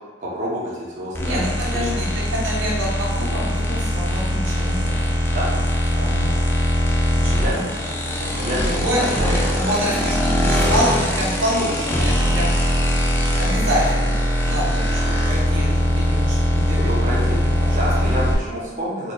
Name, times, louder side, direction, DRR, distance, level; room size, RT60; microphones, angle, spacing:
voice 1, 0.2-2.0 5.3-5.6 7.2-7.5 8.3-9.1 9.4-9.6 16.7-17.2 17.7-19.1, equal, 35° right, -6 dB, 0.9 m, -28 dB
sound 1, 1.1-18.3, equal, 10° left, 0.4 m, -21 dB
voice 2, 1.2-4.9 5.9-6.4 7.2-7.7 8.2-12.5 13.3-16.9 17.2-17.8, equal, 70° right, -5 dB, 1.1 m, -26 dB
4.0 x 2.0 x 3.7 m, 1.3 s
head